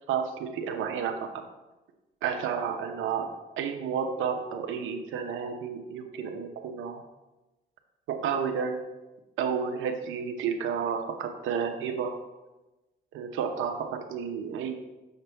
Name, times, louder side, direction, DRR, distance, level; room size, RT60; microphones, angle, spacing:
voice 1, 0.1-1.4 2.2-3.3 3.6-7.0 8.1-8.8 9.4-12.2 13.1-14.7, right 7 dB, 85° right, 5 dB, 0.9 m, -31 dB
6.6 x 6.6 x 3.4 m, 1.1 s
cardioid pair, 90°, 20 cm